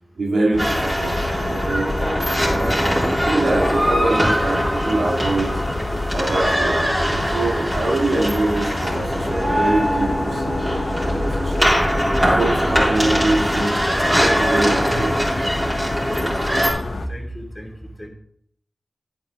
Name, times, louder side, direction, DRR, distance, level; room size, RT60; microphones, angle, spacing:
voice 1, 0.2-2.3 2.5-2.7 3.2-5.6 6.1-13.7 14.2-15.3, right 2 dB, 90° right, -2 dB, 2.2 m, -24 dB
sound 1, 0.5-17.1, left 2 dB, 70° left, 0.9 m, -29 dB
sound 2, 0.6-16.7, equal, 10° right, 3.7 m, -21 dB
voice 2, 16.0-18.1, equal, 25° left, 1 dB, 2.5 m, -33 dB
10.5 x 8.5 x 3.7 m, 0.66 s
cardioid pair, 45°, 0 cm